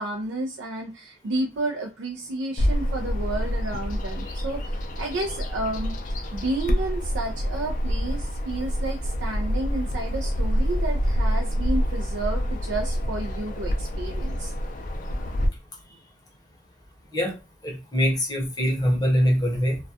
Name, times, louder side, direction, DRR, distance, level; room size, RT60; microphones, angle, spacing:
voice 1, 0.0-6.0 6.3-14.5, right 2 dB, 85° right, 2 dB, 0.4 m, -31 dB
Bird vocalization bird call bird song, 2.6-15.5, equal, 45° left, 0.3 m, -27 dB
voice 2, 17.6-19.8, equal, 20° left, 0 dB, 0.7 m, -23 dB
2.3 x 2.1 x 2.7 m, 0.28 s
head